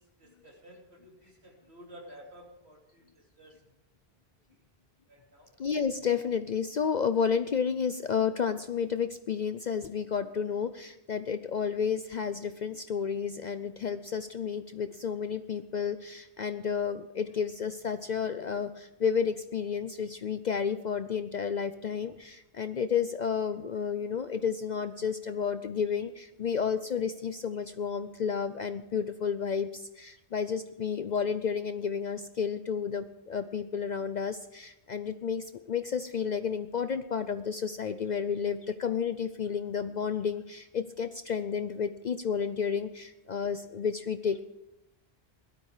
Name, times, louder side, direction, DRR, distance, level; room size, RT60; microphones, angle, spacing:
voice 1, 0.2-3.1 3.4-3.5 5.1-5.5, equal, 85° right, 0 dB, 3.4 m, -52 dB
voice 2, 5.6-44.4, left 6 dB, 50° left, 10 dB, 0.6 m, -31 dB
17.5 x 12.0 x 4.9 m, 0.95 s
omnidirectional pair, 1.1 m